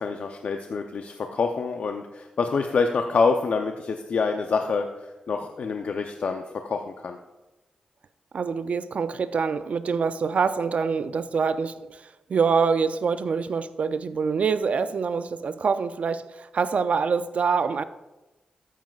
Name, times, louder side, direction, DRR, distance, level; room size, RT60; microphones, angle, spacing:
voice 1, 0.0-7.2, left 4 dB, 65° left, 0.6 m, -26 dB
voice 2, 8.3-17.8, right 5 dB, 60° right, 0.4 m, -25 dB
13.5 x 7.4 x 2.4 m
cardioid pair, 60°, 3 cm